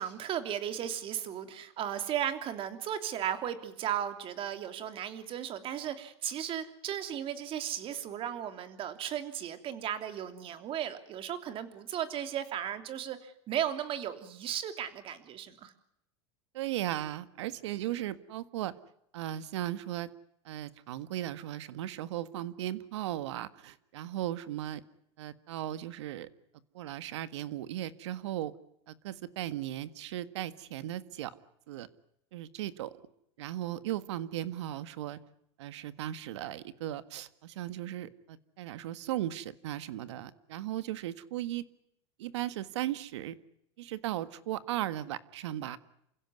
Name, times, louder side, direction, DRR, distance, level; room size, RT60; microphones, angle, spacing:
voice 1, 0.0-15.7, right 10 dB, 40° right, 9 dB, 3.1 m, -35 dB
voice 2, 16.5-18.7 19.1-20.1 20.4-24.8 25.2-26.3 26.7-28.5 28.9-31.3 31.7-31.9 32.3-32.9 33.4-35.2 35.6-41.6 42.2-43.4 43.8-45.8, right 13 dB, 80° right, 14 dB, 1.7 m, -37 dB
28.5 x 16.5 x 9.6 m, 0.77 s
supercardioid pair, 130°, 15 cm